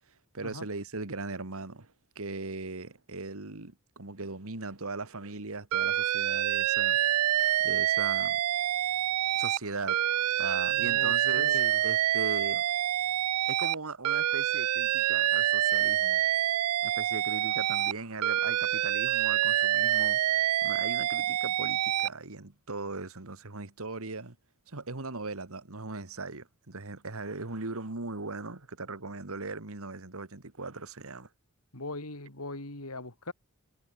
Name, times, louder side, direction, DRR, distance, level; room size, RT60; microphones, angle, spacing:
voice 1, 0.3-7.0 7.6-8.4 9.4-10.1 10.4-11.6 11.8-12.7 13.5-16.2 16.8-24.4 24.7-31.3, right 3 dB, 70° right, 2.0 m, -39 dB
Alarm, 5.7-9.6 9.9-13.8 14.0-17.9 18.2-22.1, right 13 dB, 85° right, 0.4 m, -27 dB
voice 2, 10.7-11.8 31.7-33.3, left 2 dB, 75° left, 4.8 m, -40 dB
head